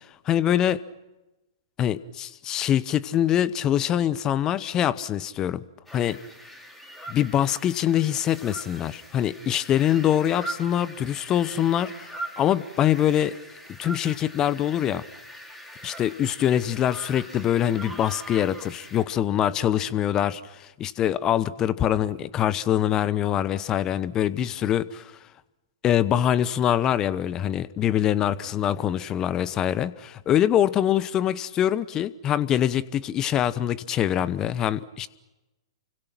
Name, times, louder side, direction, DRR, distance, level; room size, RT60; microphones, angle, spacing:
voice 1, 0.3-0.8 1.8-5.6 5.9-6.2 7.1-12.1 12.4-13.3 13.8-15.0 15.8-25.1 25.8-35.1, left 10 dB, 25° left, 18 dB, 0.9 m, -24 dB
sound 1, 5.9-19.0, right 1 dB, 5° left, 4.3 m, -42 dB
29.5 x 25.0 x 6.0 m, 1.0 s
figure-of-eight pair, 115°, 3 cm